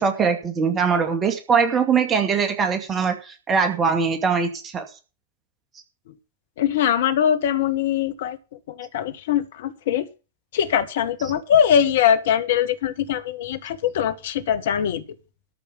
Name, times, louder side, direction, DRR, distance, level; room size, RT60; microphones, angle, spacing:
voice 1, 0.0-4.9, right 6 dB, 25° right, 2.2 m, -22 dB
voice 2, 6.6-8.4 8.8-10.1 10.5-15.0, left 9 dB, 55° left, 1.5 m, -22 dB
13.5 x 5.4 x 8.4 m
figure-of-eight pair, 90°, 0 cm